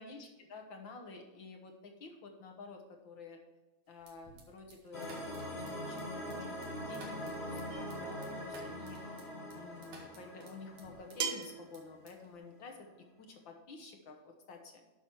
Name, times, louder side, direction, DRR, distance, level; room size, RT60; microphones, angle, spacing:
voice 1, 0.0-3.4 3.9-9.1 9.5-12.9 13.2-14.8, left 4 dB, 60° left, 4 dB, 1.4 m, -51 dB
sound 1, 4.0-11.5 11.7-12.4, right 3 dB, 80° right, 3.1 m, -57 dB
sound 2, 4.9-12.0, equal, 25° left, 1.4 m, -43 dB
sound 3, 7.7-8.1 9.6-9.7 11.2-11.7, right 6 dB, 60° right, 1.6 m, -37 dB
9.6 x 6.0 x 4.6 m, 1.2 s
omnidirectional pair, 3.3 m